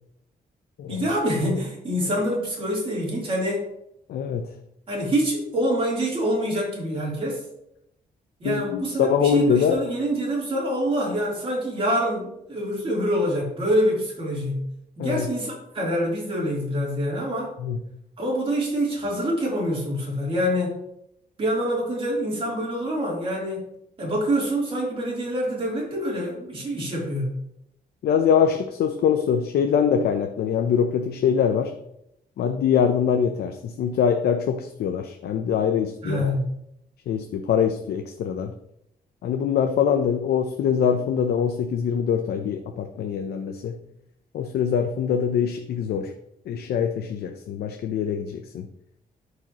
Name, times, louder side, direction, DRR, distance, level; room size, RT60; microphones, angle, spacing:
voice 1, 0.9-3.6 4.9-7.4 8.4-14.7 15.0-17.5 18.2-20.8 21.4-23.6 24.0-27.4 36.0-36.5, equal, 35° right, -4 dB, 3.3 m, -26 dB
voice 2, 4.1-4.5 8.4-9.8 15.0-15.3 17.6-17.8 28.0-31.7 32.4-36.3 37.1-38.5 39.2-43.8 44.3-46.1 46.5-48.7, left 7 dB, 85° left, 5 dB, 0.7 m, -23 dB
13.5 x 4.9 x 3.0 m, 0.80 s
cardioid pair, 140°, 16 cm